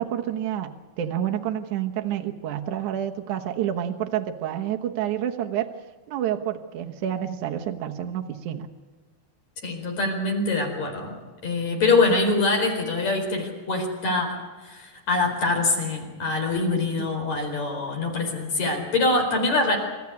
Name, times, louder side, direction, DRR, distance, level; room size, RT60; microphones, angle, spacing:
voice 1, 0.0-5.7 6.1-8.7 17.0-17.1, right 10 dB, 70° right, 3 dB, 2.6 m, -29 dB
voice 2, 9.6-19.8, left 3 dB, 55° left, 3 dB, 5.8 m, -24 dB
26.5 x 14.0 x 9.7 m, 1.3 s
omnidirectional pair, 3.7 m